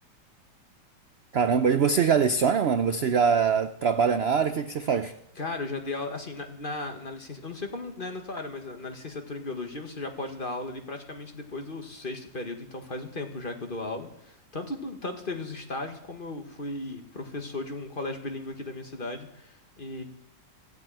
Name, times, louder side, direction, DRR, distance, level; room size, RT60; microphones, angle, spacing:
voice 1, 1.3-5.1, right 6 dB, 65° right, 10 dB, 0.6 m, -23 dB
voice 2, 5.3-20.0, left 2 dB, 30° left, 5 dB, 1.6 m, -36 dB
15.5 x 8.1 x 8.9 m, 0.82 s
omnidirectional pair, 1.9 m